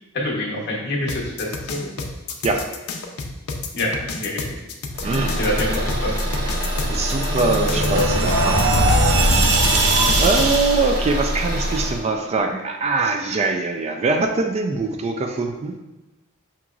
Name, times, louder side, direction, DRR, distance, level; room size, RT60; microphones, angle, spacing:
voice 1, 0.1-1.9 3.7-4.6 5.0-6.2, left 1 dB, 55° left, -2 dB, 0.9 m, -26 dB
sound 1, 1.1-10.6, left 4 dB, 75° left, 0.5 m, -30 dB
Car / Engine, 4.9-12.0, equal, 50° right, 0.9 m, -25 dB
voice 2, 5.0-5.4 6.9-9.1 9.5-15.7, right 3 dB, 30° right, 4 dB, 0.3 m, -23 dB
sound 2, 6.5-11.0, right 1 dB, 80° right, 0.7 m, -20 dB
5.8 x 2.9 x 2.4 m, 1.0 s
head